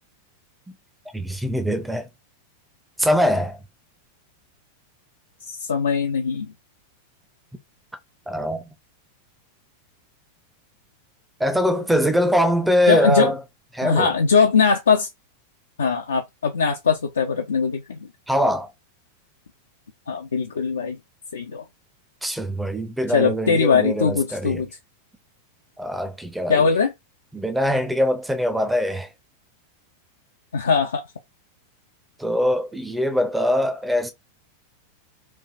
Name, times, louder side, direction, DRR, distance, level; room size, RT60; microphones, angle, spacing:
voice 1, 1.1-2.1 3.0-3.6 8.3-8.6 11.4-13.4 13.7-14.1 18.3-18.7 22.2-24.6 25.8-26.7 27.3-29.1 32.2-34.1, equal, 5° right, 0.6 m, -22 dB
voice 2, 5.5-6.5 12.9-13.3 13.8-15.1 15.8-18.1 20.1-21.0 21.3-21.6 23.1-24.7 26.5-26.9 30.5-31.0, left 5 dB, 70° left, 0.4 m, -21 dB
3.2 x 2.5 x 2.4 m
figure-of-eight pair, 90°, 0 cm